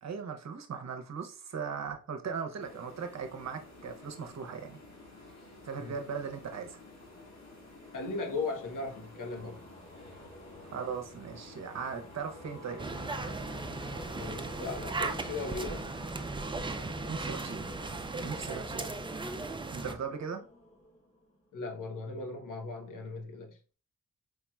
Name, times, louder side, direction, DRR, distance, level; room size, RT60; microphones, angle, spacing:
voice 1, 0.0-4.8 5.6-6.8 10.6-12.8 16.7-17.7 18.2-18.9 19.7-20.4, right 6 dB, 55° right, 0.8 m, -38 dB
sound 1, 2.6-16.1, left 2 dB, 55° left, 1.8 m, -52 dB
sound 2, 7.3-21.7, left 1 dB, 20° left, 1.3 m, -52 dB
voice 2, 7.9-9.6 14.1-15.9 21.5-23.6, left 3 dB, 75° left, 1.0 m, -37 dB
sound 3, 12.8-19.9, right 3 dB, 15° right, 0.4 m, -37 dB
4.7 x 3.0 x 2.2 m
cardioid pair, 65°, 32 cm